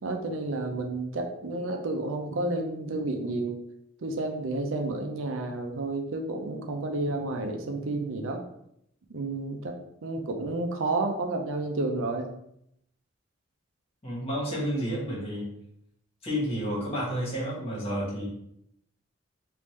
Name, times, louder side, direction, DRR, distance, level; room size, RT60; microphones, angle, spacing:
voice 1, 0.0-3.6 4.0-8.4 9.1-12.3, right 2 dB, 75° right, 4 dB, 0.5 m, -31 dB
voice 2, 14.0-15.5 16.2-18.3, equal, 30° left, -7 dB, 1.4 m, -30 dB
3.5 x 2.5 x 3.1 m, 0.75 s
head